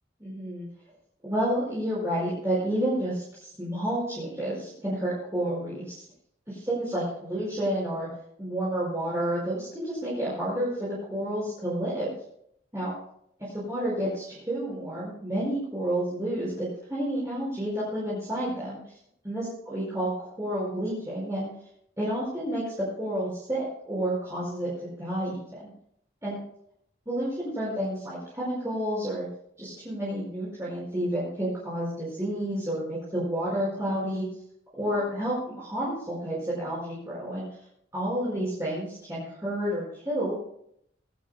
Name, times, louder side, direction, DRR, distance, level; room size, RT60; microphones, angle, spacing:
voice 1, 0.2-0.7 1.2-6.0 6.5-8.1 8.4-12.1 12.7-12.9 13.4-18.8 19.2-21.5 22.0-25.7 26.2-26.4 27.0-29.3 29.6-34.3 34.8-37.5 37.9-40.4, right 1 dB, 15° right, -8 dB, 5.1 m, -30 dB
22.5 x 11.5 x 2.2 m, 0.70 s
head